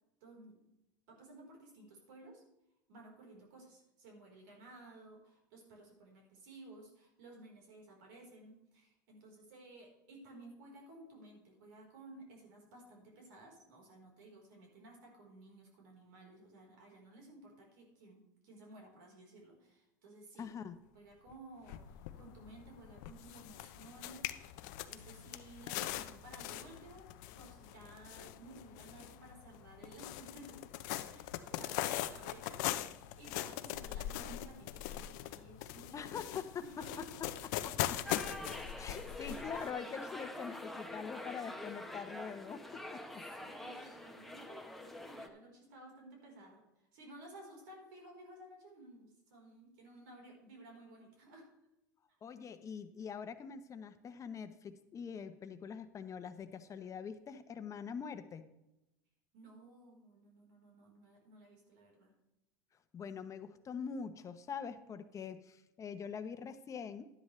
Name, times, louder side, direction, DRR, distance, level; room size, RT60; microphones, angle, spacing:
voice 1, 0.2-0.5 1.1-2.4 2.9-20.5 20.9-24.6 24.9-27.1 27.3-30.6 31.1-36.1 36.6-37.2 38.9-39.4 43.1-46.6 46.9-51.5 52.1-52.2 59.3-62.1, right 2 dB, 75° right, 0 dB, 4.2 m, -56 dB
voice 2, 20.4-20.8 35.9-36.8 37.6-38.5 38.8-43.2 52.2-58.4 62.9-67.0, left 6 dB, 30° left, 10 dB, 1.0 m, -44 dB
sound 1, 21.3-21.4 21.7-39.7, left 13 dB, 70° left, 0.7 m, -42 dB
sound 2, 38.1-45.3, left 1 dB, ahead, 1.2 m, -46 dB
11.5 x 10.5 x 3.3 m, 0.91 s
hypercardioid pair, 95°, 10 cm